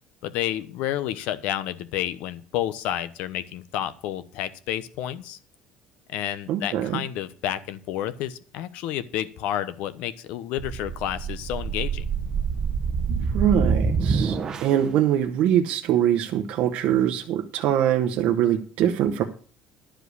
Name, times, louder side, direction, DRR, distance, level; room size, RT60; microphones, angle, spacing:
voice 1, 0.2-5.4 6.1-12.1, left 12 dB, 70° left, 14 dB, 0.9 m, -30 dB
voice 2, 6.5-7.0 13.1-19.2, right 10 dB, 60° right, 4 dB, 0.9 m, -23 dB
sound 1, 10.6-14.9, right 5 dB, 25° right, 0.8 m, -26 dB
11.5 x 5.0 x 8.1 m, 0.43 s
cardioid pair, 175°, 2 cm